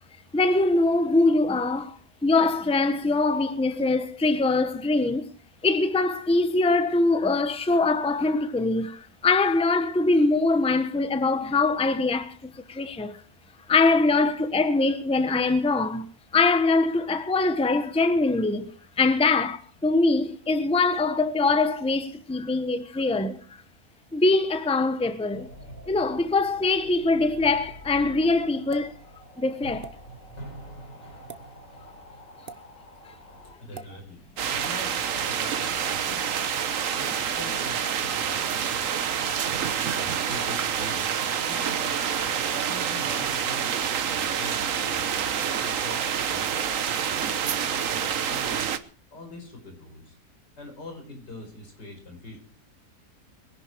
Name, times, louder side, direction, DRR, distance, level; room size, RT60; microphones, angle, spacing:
voice 1, 0.3-5.3 5.6-13.2 13.7-23.6 24.1-25.5 25.9-29.0 29.4-29.9, left 3 dB, 5° left, 0.9 m, -23 dB
sound 1, 25.3-33.5, right 1 dB, 50° left, 4.1 m, -45 dB
sound 2, 28.7-28.9 29.8-29.9 31.2-31.4 32.5-32.6 33.7-33.9 34.6-34.8, right 5 dB, 35° right, 1.1 m, -41 dB
voice 2, 33.6-34.2 34.5-36.4 36.9-39.1 39.9-48.7 49.1-50.1 50.6-52.4, left 2 dB, 85° left, 5.8 m, -44 dB
sound 3, 34.4-48.8, right 8 dB, 55° right, 1.3 m, -27 dB
22.5 x 11.0 x 4.7 m
omnidirectional pair, 1.8 m